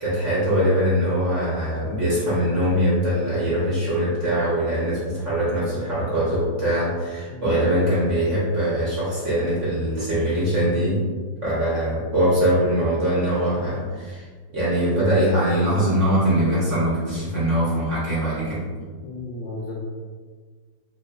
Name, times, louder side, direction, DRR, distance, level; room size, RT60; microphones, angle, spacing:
voice 1, 0.0-11.0 11.4-14.3 14.5-18.7, equal, 50° right, -9 dB, 1.0 m, -22 dB
voice 2, 19.0-19.8, left 3 dB, 60° left, -7 dB, 0.8 m, -34 dB
3.2 x 2.6 x 2.2 m, 1.5 s
omnidirectional pair, 2.0 m